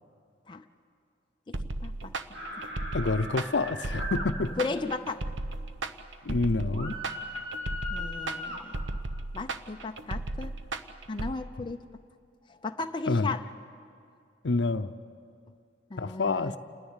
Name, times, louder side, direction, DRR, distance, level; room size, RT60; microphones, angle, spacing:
voice 1, 1.5-2.1 4.6-5.2 7.9-8.7 9.3-10.5 11.1-11.8 12.5-13.4 15.9-16.5, left 3 dB, 25° left, 6 dB, 0.5 m, -35 dB
sound 1, 1.5-11.3, right 2 dB, 85° right, 0.9 m, -35 dB
sound 2, 2.3-4.3 6.7-8.6, equal, 70° right, 3.0 m, -38 dB
voice 2, 2.9-4.5 6.2-7.0 13.1-13.4 14.4-14.9 16.0-16.6, left 3 dB, 65° left, 10 dB, 0.6 m, -28 dB
29.0 x 10.5 x 9.7 m, 2.3 s
head